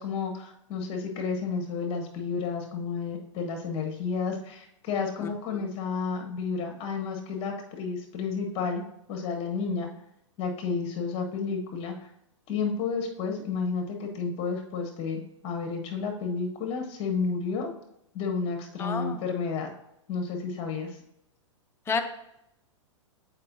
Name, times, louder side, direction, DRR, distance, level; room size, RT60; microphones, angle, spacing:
voice 1, 0.0-8.8 9.1-9.9 10.4-11.9 12.5-17.7 18.1-19.7 20.1-21.0, left 5 dB, 35° left, 3 dB, 1.3 m, -31 dB
voice 2, 5.2-5.6 18.8-19.2 21.9-22.0, left 5 dB, 15° left, 5 dB, 0.6 m, -31 dB
7.4 x 4.6 x 2.7 m, 0.79 s
hypercardioid pair, 115°, 16 cm